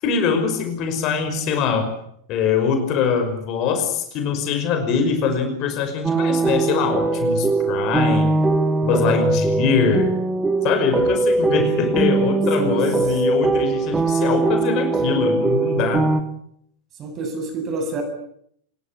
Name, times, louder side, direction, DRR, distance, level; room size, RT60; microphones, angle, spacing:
voice 1, 0.0-1.9 2.3-8.4 8.8-10.1 10.6-16.1, left 6 dB, 40° left, 6 dB, 5.5 m, -22 dB
sound 1, 6.0-16.2, right 3 dB, 10° right, 1.8 m, -21 dB
voice 2, 17.0-18.0, right 3 dB, 30° right, 6 dB, 7.6 m, -27 dB
25.5 x 22.0 x 8.3 m, 0.70 s
figure-of-eight pair, 90°, 0 cm